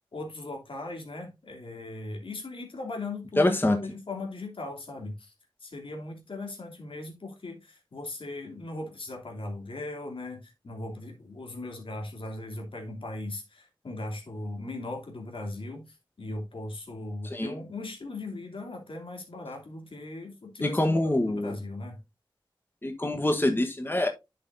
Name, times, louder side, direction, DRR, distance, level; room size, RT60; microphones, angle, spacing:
voice 1, 0.1-5.3 5.6-22.0, left 2 dB, 80° left, 2.7 m, -38 dB
voice 2, 3.4-3.8 17.3-17.5 20.6-21.5 22.8-24.1, left 1 dB, 25° left, 1.2 m, -25 dB
10.5 x 5.9 x 2.6 m
wide cardioid pair, 60°, 9 cm